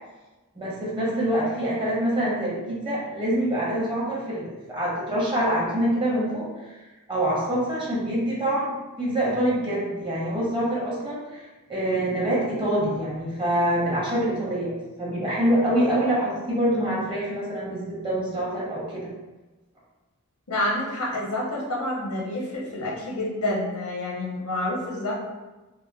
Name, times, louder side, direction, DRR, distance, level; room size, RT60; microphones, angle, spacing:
voice 1, 0.5-6.8 7.1-19.1, right 1 dB, 25° right, -6 dB, 1.2 m, -25 dB
voice 2, 20.5-25.2, left 1 dB, 85° left, -4 dB, 1.1 m, -28 dB
5.1 x 2.1 x 2.4 m, 1.1 s
head